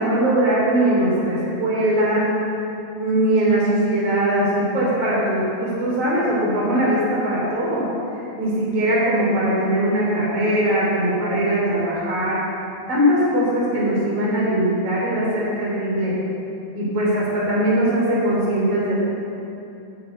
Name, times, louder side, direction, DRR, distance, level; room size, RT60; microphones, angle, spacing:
voice 1, 0.0-2.3 2.9-7.8 8.1-12.4 12.9-16.2 16.8-18.9, right 1 dB, 40° right, -6 dB, 4.1 m, -20 dB
10.5 x 7.6 x 8.1 m, 2.8 s
omnidirectional pair, 4.4 m